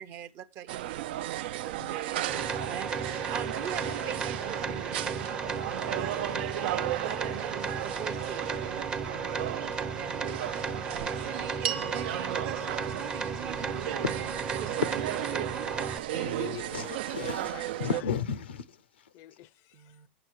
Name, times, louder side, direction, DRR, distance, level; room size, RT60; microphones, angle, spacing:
voice 1, 0.0-15.5 19.7-20.1, right 10 dB, 45° right, 0.7 m, -43 dB
sound 1, 0.7-18.0, right 14 dB, 70° right, 0.4 m, -35 dB
sound 2, 2.3-16.0, right 4 dB, 15° right, 0.6 m, -35 dB
sound 3, 11.6-16.1, right 9 dB, 85° right, 1.1 m, -41 dB
voice 2, 16.1-17.6 17.9-18.0 19.1-20.0, left 14 dB, 50° left, 0.5 m, -44 dB
voice 3, 16.7-19.1, left 6 dB, 90° left, 0.7 m, -34 dB
9.0 x 6.8 x 4.5 m
hypercardioid pair, 120°, 6 cm